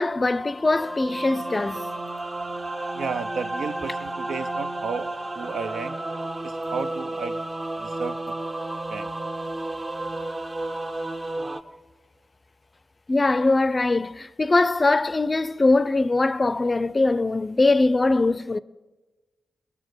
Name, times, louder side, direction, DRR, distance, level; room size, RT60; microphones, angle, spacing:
voice 1, 0.0-2.1 13.1-18.6, left 2 dB, 35° left, 0.5 m, -22 dB
sound 1, 0.6-11.6, right 2 dB, 30° right, 0.8 m, -32 dB
voice 2, 2.9-5.1 5.3-6.0 6.4-7.4 7.8-8.3 8.9-9.1, right 5 dB, 75° right, 0.7 m, -33 dB
20.0 x 6.9 x 7.9 m
supercardioid pair, 45°, 0 cm